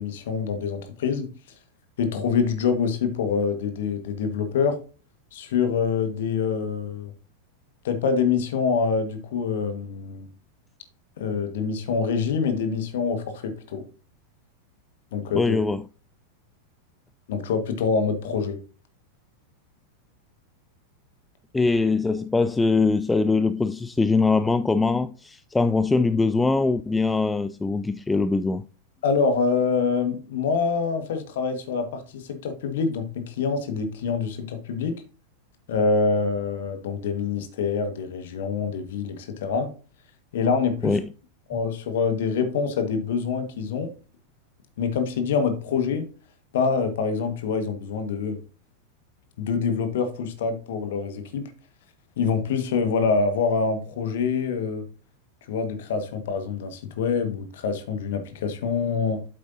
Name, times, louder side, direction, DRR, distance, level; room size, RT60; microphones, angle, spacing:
voice 1, 0.0-1.3 2.0-4.8 5.3-7.1 7.8-10.3 11.2-13.8 15.1-15.6 17.3-18.6 29.0-35.0 35.7-39.7 40.3-41.0 41.5-43.9 44.8-46.1 46.5-48.4 49.4-51.5 52.2-54.8 55.5-59.2, left 5 dB, 55° left, 1.5 m, -25 dB
voice 2, 15.3-15.8 21.5-28.7 40.8-41.0, left 3 dB, 10° left, 0.4 m, -22 dB
8.4 x 8.0 x 2.7 m
figure-of-eight pair, 90°, 0 cm